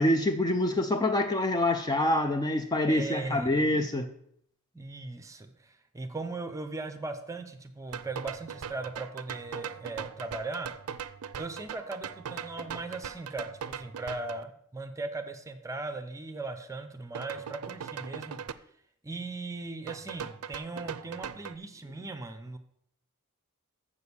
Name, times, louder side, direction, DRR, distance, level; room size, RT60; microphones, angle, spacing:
voice 1, 0.0-4.1, left 1 dB, 20° left, 7 dB, 0.5 m, -26 dB
voice 2, 2.9-3.9 4.7-10.7 11.4-18.4 19.0-22.6, right 3 dB, 15° right, 8 dB, 0.8 m, -38 dB
sound 1, 7.9-14.4 17.1-18.5 19.9-21.6, right 7 dB, 85° right, 0.5 m, -40 dB
7.2 x 6.5 x 6.9 m, 0.68 s
head